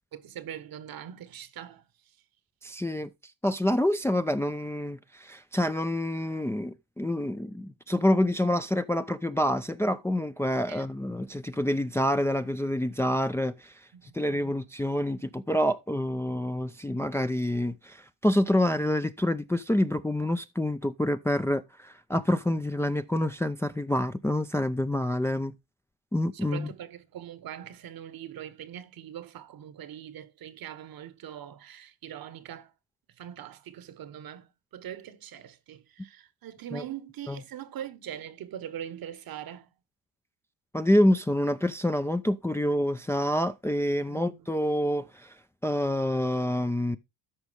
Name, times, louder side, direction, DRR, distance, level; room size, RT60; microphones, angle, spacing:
voice 1, 0.1-1.8 10.7-10.9 13.9-14.6 26.3-32.7 33.2-39.7 44.1-44.3, right 10 dB, 55° right, 1.2 m, -42 dB
voice 2, 2.6-3.1 3.4-13.7 14.1-25.5 26.1-26.7 36.7-36.8 37.3-37.4 40.7-45.3 45.6-47.0, left 1 dB, 5° left, 0.5 m, -27 dB
13.0 x 5.2 x 3.4 m
supercardioid pair, 80°, 43 cm